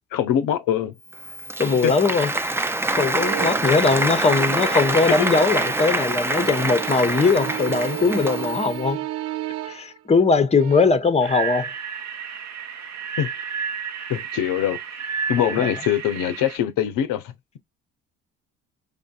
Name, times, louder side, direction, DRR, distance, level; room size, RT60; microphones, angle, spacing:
voice 1, 0.1-0.9 1.8-2.0 3.4-3.5 5.2-5.3 13.2-13.3 14.1-15.0 15.3-17.3, left 10 dB, 65° left, 0.6 m, -23 dB
Applause, 1.1-8.7, right 1 dB, 5° right, 0.5 m, -25 dB
voice 2, 1.6-2.3 3.0-9.0 9.7-11.7 15.4-15.7, left 4 dB, 20° left, 0.8 m, -20 dB
sound 1, 3.2-3.7 4.0-5.9 6.2-10.0 10.5-10.8, right 14 dB, 80° right, 0.6 m, -33 dB
sound 2, 11.2-16.6, right 6 dB, 50° right, 0.9 m, -31 dB
4.9 x 2.5 x 2.3 m
hypercardioid pair, 55°, 36 cm